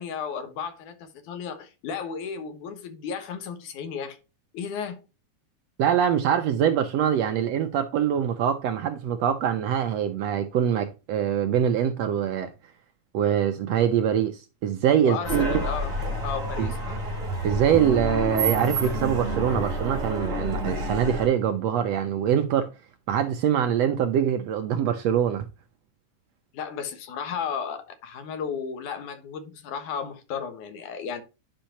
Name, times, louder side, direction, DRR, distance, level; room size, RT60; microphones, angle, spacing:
voice 1, 0.0-4.2 4.5-5.0 15.0-15.9 16.2-16.9 26.5-31.2, left 6 dB, 75° left, 2.7 m, -34 dB
voice 2, 5.8-12.5 13.1-15.5 16.6-16.7 17.4-22.7 23.1-25.4, right 9 dB, 70° right, 1.6 m, -24 dB
sound 1, 15.2-21.3, right 1 dB, 25° right, 3.4 m, -29 dB
10.5 x 5.5 x 2.8 m
omnidirectional pair, 3.6 m